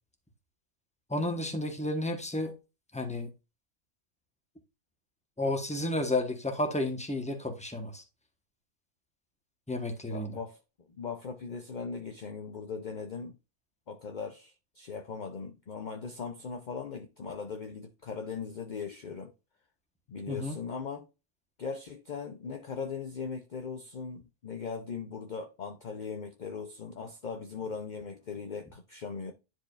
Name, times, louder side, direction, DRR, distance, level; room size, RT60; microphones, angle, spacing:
voice 1, 1.1-2.5 2.9-3.3 5.4-8.0 9.7-10.3 20.3-20.6, left 1 dB, 5° left, 1.1 m, -31 dB
voice 2, 10.1-13.4 13.9-19.3 20.1-21.1 21.6-29.3, left 5 dB, 45° left, 0.7 m, -39 dB
10.0 x 4.7 x 2.5 m
omnidirectional pair, 1.3 m